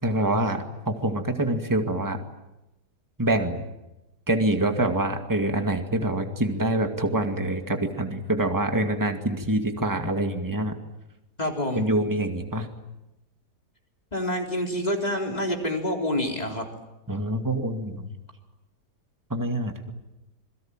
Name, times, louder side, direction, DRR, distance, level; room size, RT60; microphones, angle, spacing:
voice 1, 0.0-2.2 3.2-3.6 4.3-10.8 11.8-12.7 17.1-18.1 19.3-19.9, right 1 dB, 10° right, 5 dB, 2.2 m, -25 dB
voice 2, 11.4-11.9 14.1-16.7, left 1 dB, 25° left, 1 dB, 4.0 m, -27 dB
27.0 x 22.5 x 9.0 m, 0.95 s
omnidirectional pair, 1.8 m